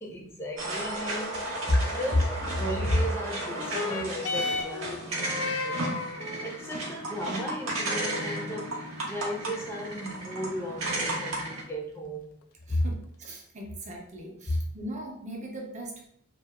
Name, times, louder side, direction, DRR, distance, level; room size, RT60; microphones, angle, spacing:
voice 1, 0.0-5.8 6.4-8.8 9.1-12.3 12.7-12.9 14.5-14.7, left 1 dB, 15° left, 0.4 m, -32 dB
sound 1, 0.6-11.6, right 2 dB, 90° right, 0.7 m, -34 dB
sound 2, 3.4-12.4 13.3-13.4, left 4 dB, 85° left, 0.3 m, -37 dB
voice 2, 12.7-16.1, right 1 dB, 35° right, 0.5 m, -40 dB
2.8 x 2.0 x 2.2 m
head